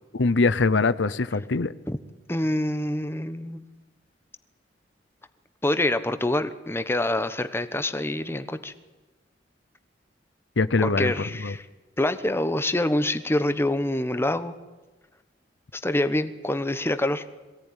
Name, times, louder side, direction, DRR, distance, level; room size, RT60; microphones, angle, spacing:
voice 1, 0.1-1.7 10.6-11.1 11.4-11.6, left 3 dB, 80° left, 15 dB, 0.8 m, -22 dB
voice 2, 2.3-3.6 5.6-8.7 10.8-11.7 12.0-14.5 15.7-17.3, left 1 dB, 15° left, 11 dB, 1.1 m, -26 dB
23.0 x 17.0 x 9.9 m, 1.2 s
head